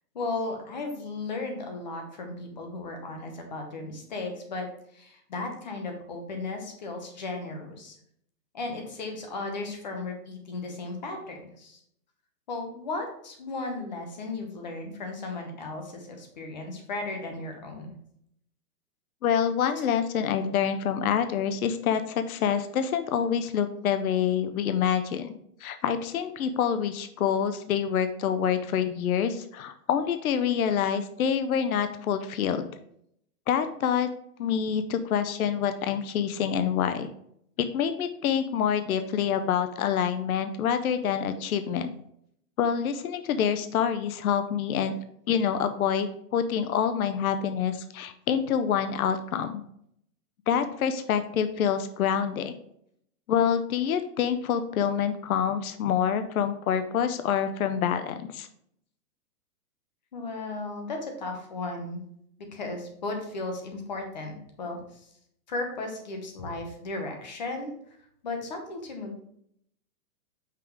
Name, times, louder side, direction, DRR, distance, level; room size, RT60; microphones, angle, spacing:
voice 1, 0.1-4.7 4.9-8.0 8.5-11.8 12.5-18.0 60.1-62.0 62.5-65.1 65.5-67.7 68.2-69.2, left 3 dB, 30° left, 3 dB, 0.9 m, -35 dB
voice 2, 19.2-25.3 25.6-32.6 33.5-34.1 34.4-37.1 37.7-41.9 42.6-44.9 45.3-49.5 50.5-52.5 53.3-58.5, left 8 dB, 65° left, 9 dB, 0.6 m, -26 dB
5.8 x 3.5 x 4.6 m, 0.71 s
hypercardioid pair, 180°, 46 cm